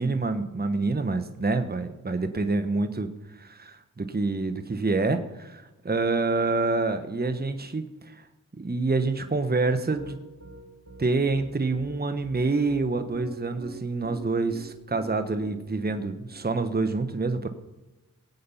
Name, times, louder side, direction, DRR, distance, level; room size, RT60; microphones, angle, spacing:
voice 1, 0.0-8.2 8.5-10.2 11.0-17.5, right 3 dB, 25° right, 8 dB, 1.2 m, -27 dB
Piano, 9.9-16.4, right 3 dB, 45° right, 3.0 m, -44 dB
19.0 x 8.6 x 5.6 m, 1.0 s
cardioid pair, 50°, 36 cm